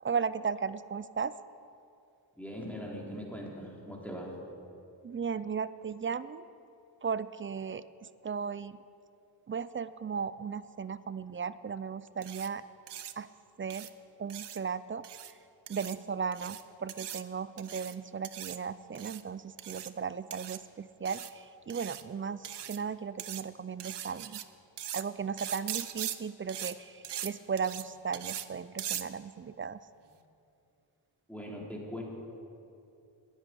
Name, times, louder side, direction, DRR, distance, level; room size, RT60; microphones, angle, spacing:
voice 1, 0.0-1.3 5.0-6.4 7.0-7.8 8.2-8.8 9.5-12.6 13.2-13.3 13.6-13.9 14.2-15.0 15.7-24.4 24.9-29.8, right 6 dB, 30° right, 16 dB, 0.4 m, -36 dB
voice 2, 2.4-4.4 31.3-32.0, equal, 5° left, -2 dB, 3.4 m, -40 dB
sound 1, 12.2-12.5 12.9-13.1 13.7-13.9 14.3-14.6 15.0-15.3 15.7-16.0 16.3-16.6 16.9-17.2 17.6-17.9 18.2-18.6 18.9-19.2 19.6-19.9 20.3-20.6 21.1-21.3 21.7-22.0 22.4-22.8 23.2-23.4 23.8-24.4 24.8-25.0 25.4-26.2 26.5-26.7 27.0-27.3 27.6-27.8 28.1-28.5 28.8-29.0, right 11 dB, 60° right, 0.7 m, -40 dB
10.0 x 8.3 x 9.9 m, 2.7 s
cardioid pair, 55°, 46 cm